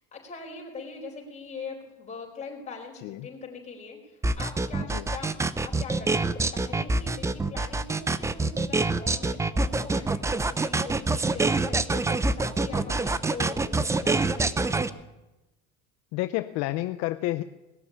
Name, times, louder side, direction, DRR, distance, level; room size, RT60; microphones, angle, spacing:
voice 1, 0.0-14.8, left 4 dB, 25° left, 0 dB, 4.7 m, -42 dB
sound 1, 4.2-14.9, right 3 dB, 10° right, 0.5 m, -25 dB
voice 2, 16.1-17.4, left 17 dB, 65° left, 11 dB, 0.6 m, -30 dB
19.5 x 7.0 x 9.7 m, 1.0 s
supercardioid pair, 120°, 29 cm